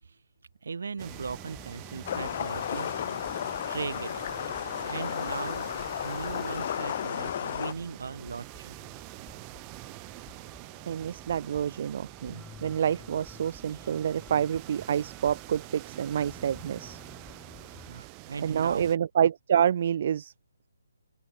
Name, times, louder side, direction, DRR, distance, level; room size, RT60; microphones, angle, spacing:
voice 1, 0.6-2.9 3.7-5.7 6.0-8.8 17.9-18.9, right 5 dB, 60° right, 3.6 m, -38 dB
sound 1, 1.0-18.0, left 6 dB, 5° left, 3.7 m, -52 dB
sound 2, 1.0-19.0, right 40 dB or more, 25° right, 4.9 m, -46 dB
sound 3, 2.1-7.7, left 10 dB, 40° left, 0.4 m, -33 dB
voice 2, 10.9-17.0 18.4-20.3, right 9 dB, 45° right, 0.3 m, -28 dB
open air
figure-of-eight pair, 145°, 0 cm